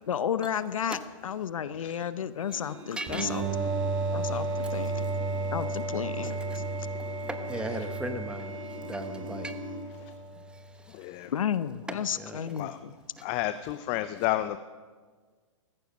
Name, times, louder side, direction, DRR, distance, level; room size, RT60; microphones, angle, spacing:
voice 1, 0.1-3.4 4.1-5.1 5.5-6.6 11.3-12.9, left 8 dB, 75° left, 15 dB, 0.8 m, -32 dB
sound 1, 2.4-9.8, equal, 80° right, 3.8 m, -43 dB
voice 2, 3.0-3.5 6.3-9.7 10.3-11.2 11.9-12.6 13.2-13.3, right 1 dB, 5° right, 9 dB, 0.9 m, -39 dB
sound 2, 3.1-10.5, right 3 dB, 25° right, 2.9 m, -33 dB
voice 3, 10.9-11.3 12.6-12.8 13.2-14.6, left 15 dB, 30° left, 12 dB, 0.5 m, -31 dB
15.5 x 14.5 x 5.2 m, 1.5 s
hypercardioid pair, 125°, 17 cm